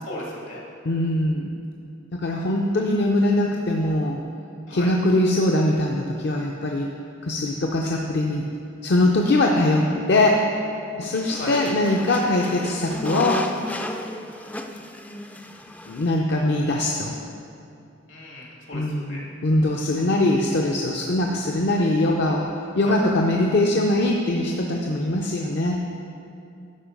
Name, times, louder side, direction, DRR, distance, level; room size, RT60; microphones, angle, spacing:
voice 1, 0.0-0.6 4.7-4.9 11.3-11.6 18.1-19.2 22.8-23.0, left 1 dB, 80° left, -3 dB, 2.1 m, -36 dB
voice 2, 0.8-1.5 2.1-4.2 4.7-6.9 7.2-8.4 8.8-10.4 11.0-13.4 15.9-17.1 18.7-22.5 22.7-25.8, left 1 dB, 60° left, 0 dB, 0.6 m, -22 dB
sound 1, 11.0-16.2, left 1 dB, 10° left, 0.3 m, -33 dB
11.5 x 4.7 x 5.2 m, 2.6 s
head